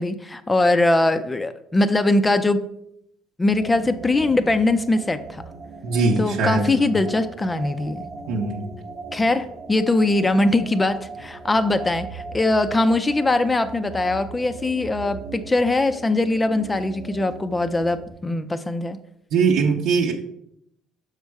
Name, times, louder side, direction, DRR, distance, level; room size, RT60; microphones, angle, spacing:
voice 1, 0.0-2.6 3.4-5.4 6.2-8.1 9.1-19.0, left 2 dB, 15° left, 10 dB, 0.5 m, -21 dB
sound 1, 3.5-18.1, right 4 dB, 45° right, 0.9 m, -39 dB
voice 2, 5.8-7.0 8.3-8.7 19.3-20.1, right 4 dB, 75° right, -1 dB, 0.9 m, -21 dB
6.4 x 5.2 x 4.7 m, 0.77 s
cardioid pair, 110°, 0 cm